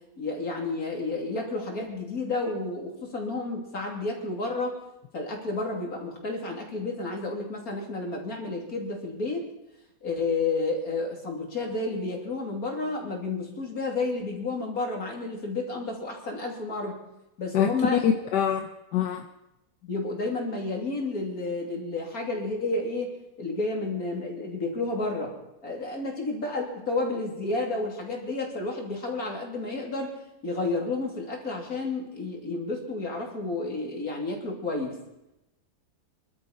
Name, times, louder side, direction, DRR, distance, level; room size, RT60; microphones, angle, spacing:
voice 1, 0.2-4.8 5.1-9.4 10.0-17.0 17.4-18.1 19.8-25.3 25.6-30.2 30.4-35.0, left 3 dB, 60° left, 0 dB, 3.4 m, -31 dB
voice 2, 17.5-19.3, left 8 dB, 85° left, 6 dB, 1.5 m, -25 dB
25.5 x 12.5 x 4.2 m, 0.92 s
omnidirectional pair, 1.8 m